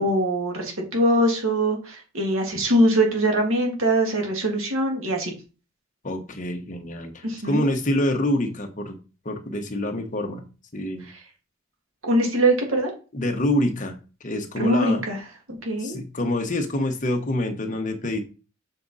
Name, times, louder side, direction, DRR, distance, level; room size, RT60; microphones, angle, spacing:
voice 1, 0.0-5.3 7.2-7.6 12.0-12.9 14.6-15.2 15.6-16.0, right 1 dB, 70° right, 1 dB, 2.0 m, -22 dB
voice 2, 6.0-9.0 9.2-10.4 10.7-11.1 13.1-15.0 15.8-18.2, left 1 dB, 40° left, 4 dB, 1.1 m, -26 dB
6.8 x 4.8 x 4.1 m, 0.34 s
head